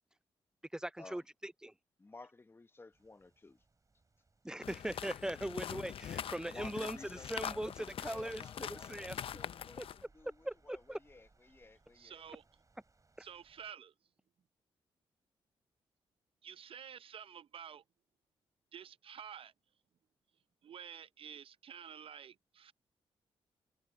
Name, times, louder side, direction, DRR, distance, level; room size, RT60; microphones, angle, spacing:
voice 1, 0.7-1.7 4.4-7.0 7.3-8.4 8.7-9.2 9.8-9.9 10.4-11.0, right 1 dB, 5° right, 0.4 m, -40 dB
voice 2, 2.0-3.6 6.5-12.2, left 3 dB, 20° left, 0.9 m, -56 dB
sound 1, 2.9-13.7, right 3 dB, 30° right, 6.5 m, -71 dB
sound 2, 4.6-10.0, left 9 dB, 60° left, 0.5 m, -43 dB
voice 3, 11.9-12.4 13.2-13.9 16.4-17.8 18.7-19.5 20.6-22.7, right 8 dB, 60° right, 0.6 m, -50 dB
cardioid pair, 65°, 10 cm